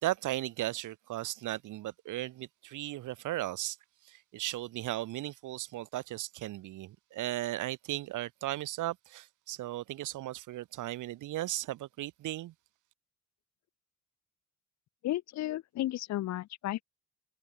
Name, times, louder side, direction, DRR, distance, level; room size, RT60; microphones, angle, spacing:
voice 1, 0.0-3.8 4.0-12.5, right 15 dB, 85° right, 3.0 m, -36 dB
voice 2, 15.0-16.8, left 14 dB, 65° left, 0.6 m, -33 dB
cardioid pair, 90°, 30 cm